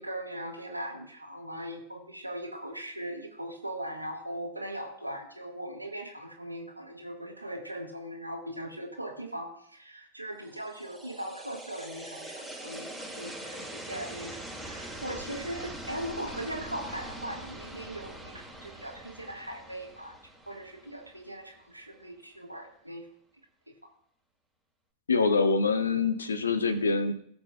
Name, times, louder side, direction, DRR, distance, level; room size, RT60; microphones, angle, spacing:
voice 1, 0.0-20.2 20.5-23.0 23.7-23.8, right 1 dB, 85° right, 2 dB, 1.5 m, -39 dB
sound 1, 10.5-21.5, right 1 dB, 5° left, 2.3 m, -43 dB
voice 2, 25.1-27.1, left 4 dB, 75° left, 11 dB, 0.9 m, -25 dB
18.0 x 7.0 x 2.3 m, 0.65 s
figure-of-eight pair, 90°, 0 cm